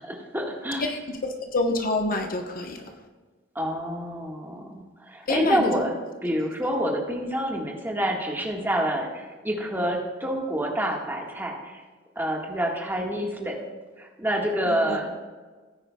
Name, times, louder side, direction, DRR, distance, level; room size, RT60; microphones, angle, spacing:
voice 1, 0.0-0.9 3.5-6.0 6.2-11.7 12.1-13.6 14.0-15.2, equal, 10° right, -1 dB, 1.5 m, -27 dB
voice 2, 0.8-2.8 5.3-5.8 14.7-15.0, left 2 dB, 45° left, 4 dB, 0.9 m, -27 dB
17.0 x 9.7 x 2.3 m, 1.4 s
head